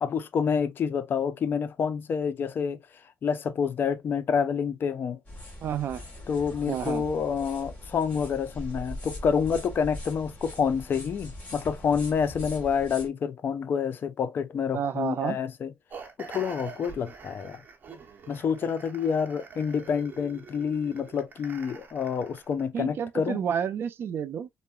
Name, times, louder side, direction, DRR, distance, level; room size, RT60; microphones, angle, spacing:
voice 1, 0.0-2.8 3.2-5.2 6.3-15.7 16.2-17.6 18.3-23.4, left 6 dB, 50° left, 0.4 m, -28 dB
sound 1, 5.2-13.1, left 1 dB, 30° left, 1.5 m, -41 dB
voice 2, 5.6-6.0 6.7-7.0 14.7-15.4 22.7-24.5, right 8 dB, 55° right, 0.4 m, -30 dB
sound 2, 15.9-22.7, right 5 dB, 40° right, 0.9 m, -45 dB
3.7 x 2.0 x 2.2 m
cardioid pair, 110°, 5 cm